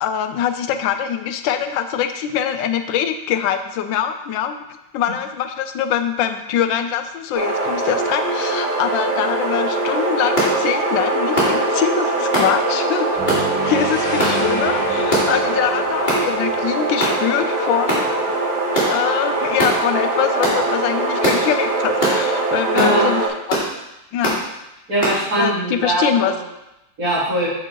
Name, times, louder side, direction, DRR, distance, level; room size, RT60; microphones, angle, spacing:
voice 1, 0.0-4.6 4.9-13.3 13.6-18.2 18.9-23.2 23.5-23.6 24.1-24.5 25.4-26.3, left 9 dB, 80° left, 8 dB, 1.3 m, -23 dB
sound 1, 7.3-23.3, right 2 dB, 25° right, 2.7 m, -22 dB
sound 2, 10.4-10.5 11.4-11.6 12.3-12.5 13.3-13.5 14.2-14.4 15.1-15.4 16.1-16.2 17.0-17.2 17.9-18.1 18.7-18.9 19.6-19.8 20.4-20.6 21.2-21.4 22.0-22.2 22.8-22.9 23.5-23.7 24.2-24.4 25.0-25.2, equal, 25° left, 2.4 m, -20 dB
sound 3, 13.2-17.4, equal, ahead, 2.6 m, -30 dB
voice 2, 22.8-23.1 24.9-26.3 27.0-27.5, right 1 dB, 50° right, -8 dB, 3.4 m, -20 dB
6.5 x 6.4 x 4.6 m, 0.90 s
omnidirectional pair, 2.1 m